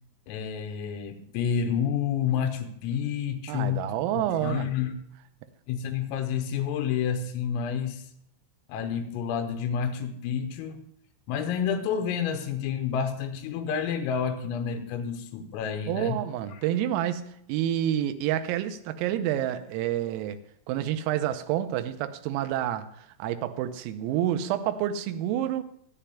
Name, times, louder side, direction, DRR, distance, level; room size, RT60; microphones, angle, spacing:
voice 1, 0.3-3.9 4.1-5.0 5.7-8.1 8.7-10.8 11.3-16.2, left 7 dB, 85° left, 3.5 m, -29 dB
voice 2, 3.5-4.7 15.9-20.4 20.7-25.6, right 11 dB, 90° right, 3.4 m, -28 dB
27.0 x 9.9 x 2.3 m
omnidirectional pair, 5.9 m